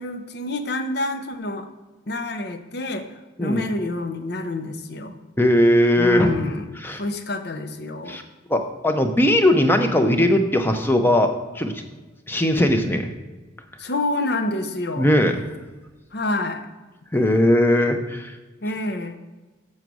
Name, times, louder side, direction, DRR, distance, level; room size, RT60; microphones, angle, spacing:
voice 1, 0.0-1.7 2.1-5.1 6.0-8.2 13.8-15.1 16.1-16.7 18.6-19.2, left 2 dB, 55° left, 8 dB, 0.7 m, -27 dB
voice 2, 5.4-6.3 6.8-7.0 8.1-8.2 8.5-11.7 12.3-13.1 15.0-15.3 17.1-18.3, left 1 dB, 10° left, 6 dB, 0.6 m, -19 dB
7.0 x 6.4 x 6.2 m, 1.2 s
head